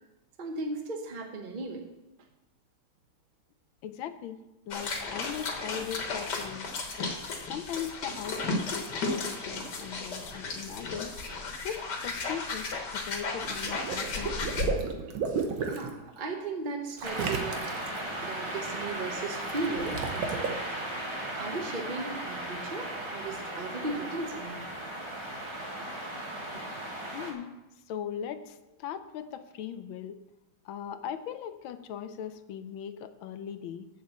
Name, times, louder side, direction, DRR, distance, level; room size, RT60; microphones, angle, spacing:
voice 1, 0.4-1.9 9.8-10.0 10.4-10.7 15.6-17.7 18.2-20.6 21.4-24.7 26.5-26.7, right 3 dB, 40° right, 3 dB, 0.7 m, -36 dB
voice 2, 3.8-4.4 4.7-6.7 7.0-7.2 7.5-11.1 11.6-14.6 27.1-27.5 27.9-30.2 30.6-33.9, left 9 dB, 80° left, 9 dB, 1.4 m, -39 dB
sound 1, 4.7-14.7, left 3 dB, 60° left, 1.9 m, -34 dB
Water / Liquid, 13.4-15.9 17.0-18.0 19.5-20.5, right 5 dB, 75° right, 1.8 m, -33 dB
sound 2, 17.0-27.3, right 1 dB, 15° right, 1.2 m, -36 dB
7.5 x 7.4 x 7.1 m, 0.97 s
omnidirectional pair, 2.2 m